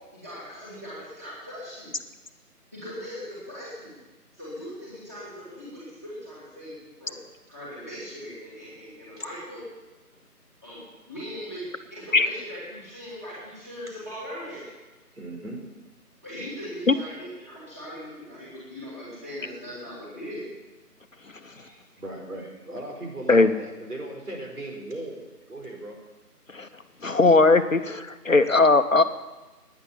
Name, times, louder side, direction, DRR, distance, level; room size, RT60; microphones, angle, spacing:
voice 1, 0.1-1.9 2.7-4.0 4.3-7.2 7.5-9.6 10.6-14.6 16.2-20.5, equal, 10° right, -10 dB, 2.7 m, -39 dB
voice 2, 15.1-15.6 21.5-26.0, right 1 dB, 70° right, 1 dB, 4.9 m, -38 dB
voice 3, 27.0-29.0, left 3 dB, 55° left, 10 dB, 0.9 m, -18 dB
12.0 x 9.8 x 9.8 m, 1.1 s
figure-of-eight pair, 180°, 47 cm